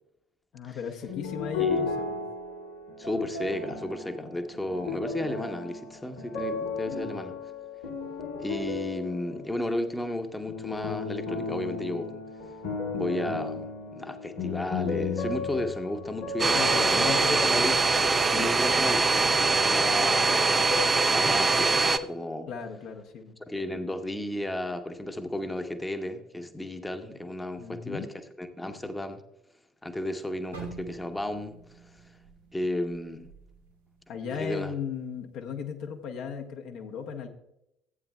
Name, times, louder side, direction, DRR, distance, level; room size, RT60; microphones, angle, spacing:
voice 1, 0.5-2.2 6.9-7.2 16.5-17.7 22.5-23.4 27.6-28.1 34.1-37.3, left 7 dB, 55° left, 4 dB, 1.0 m, -37 dB
sound 1, 1.0-10.0 10.5-19.4 19.7-20.8, left 4 dB, 80° left, 2.3 m, -35 dB
voice 2, 3.0-7.3 8.4-12.2 12.9-20.3 21.1-22.5 23.5-28.1 28.4-29.2 29.8-31.6 31.9-32.0 32.5-33.3 34.3-34.7, left 1 dB, 10° left, 7 dB, 0.9 m, -33 dB
Domestic sounds home sounds, 16.4-22.0, right 3 dB, 25° right, 0.5 m, -23 dB
sound 2, 30.5-34.6 34.9-35.2 35.8-36.2, right 5 dB, 80° right, 1.6 m, -47 dB
15.0 x 8.9 x 2.3 m, 0.81 s
figure-of-eight pair, 55°, 0 cm